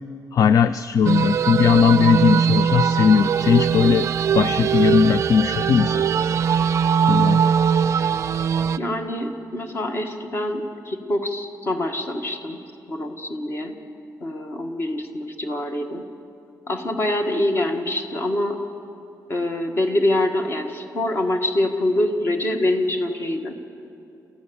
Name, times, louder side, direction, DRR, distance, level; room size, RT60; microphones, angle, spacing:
voice 1, 0.3-4.1 4.3-6.0 7.0-7.4, left 7 dB, 55° left, 14 dB, 0.4 m, -18 dB
sound 1, 1.0-8.8, right 7 dB, 45° right, 0.4 m, -21 dB
voice 2, 8.8-12.6 12.9-13.8 14.2-16.0 16.7-18.6 19.3-23.5, left 1 dB, 35° left, 5 dB, 1.6 m, -25 dB
28.0 x 14.5 x 7.1 m, 2.7 s
wide cardioid pair, 170°, 7 cm